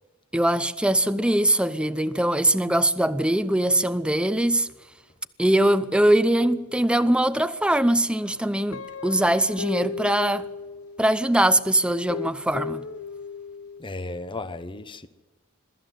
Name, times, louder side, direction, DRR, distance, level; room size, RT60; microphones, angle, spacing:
voice 1, 0.3-4.7 5.4-10.5 11.0-12.8, right 1 dB, 5° right, 0.7 m, -22 dB
Guitar, 8.7-11.2 11.9-13.8, left 5 dB, 75° left, 0.7 m, -35 dB
voice 2, 13.8-15.1, left 2 dB, 25° left, 1.0 m, -34 dB
22.5 x 14.0 x 9.3 m
head